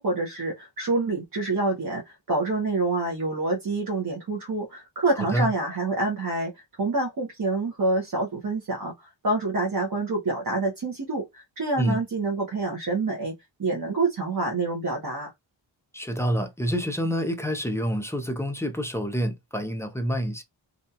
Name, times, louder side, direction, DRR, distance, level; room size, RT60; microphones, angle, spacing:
voice 1, 0.0-6.5 6.8-13.3 13.6-15.3, right 2 dB, 45° right, 0.9 m, -27 dB
voice 2, 15.9-20.4, equal, 5° left, 0.4 m, -27 dB
2.6 x 2.3 x 2.7 m
wide cardioid pair, 95°, 47 cm